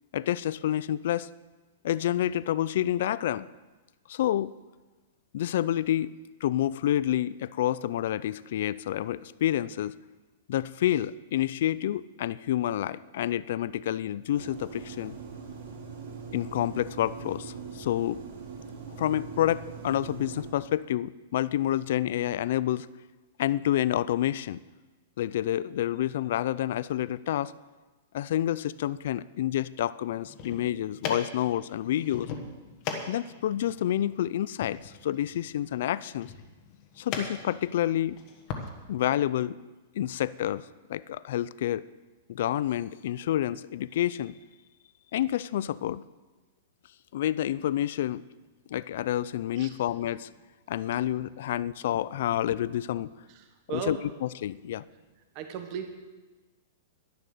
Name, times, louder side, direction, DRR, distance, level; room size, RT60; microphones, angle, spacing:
voice 1, 0.1-1.3 1.8-3.5 4.1-4.5 5.3-10.0 10.5-15.1 16.3-18.2 19.0-22.9 23.4-24.6 25.2-27.5 28.1-32.3 33.1-36.3 37.0-38.2 38.9-39.7 39.9-41.8 42.3-44.3 45.1-46.0 47.1-48.2 48.7-50.3 50.7-53.1 53.7-54.8, left 12 dB, 50° left, 18 dB, 0.4 m, -28 dB
sound 1, 14.3-20.5, right 5 dB, 55° right, 3.0 m, -42 dB
sound 2, 30.1-38.7, left 5 dB, 25° left, 1.3 m, -40 dB
voice 2, 55.3-55.9, right 8 dB, 30° right, 6 dB, 1.1 m, -35 dB
11.5 x 11.0 x 6.7 m, 1.2 s
supercardioid pair, 180°, 0 cm